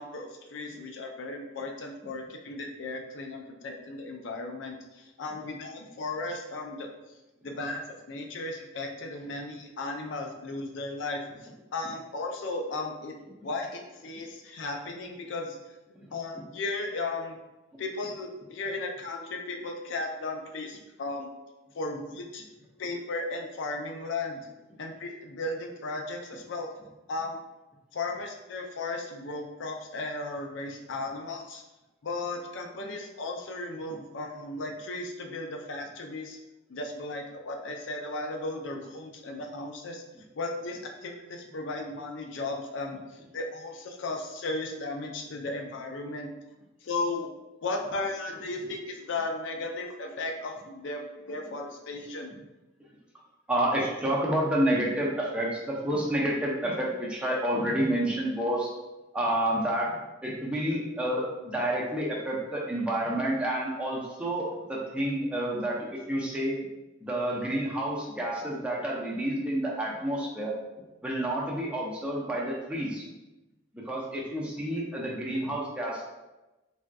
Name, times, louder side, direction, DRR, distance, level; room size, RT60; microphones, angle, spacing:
voice 1, 0.0-6.9 7.4-13.1 13.4-15.7 16.1-17.4 17.8-21.3 21.7-22.4 22.8-24.5 24.8-26.7 27.1-27.4 27.9-31.6 32.0-36.4 36.7-40.0 40.4-46.3 46.8-47.3 47.6-52.3, left 2 dB, 65° left, 3 dB, 0.4 m, -35 dB
voice 2, 53.5-58.7 59.1-59.9 60.2-66.6 67.0-70.5 71.0-73.0 73.7-76.0, right 1 dB, 5° right, -4 dB, 0.5 m, -29 dB
3.4 x 2.5 x 2.2 m, 1.0 s
head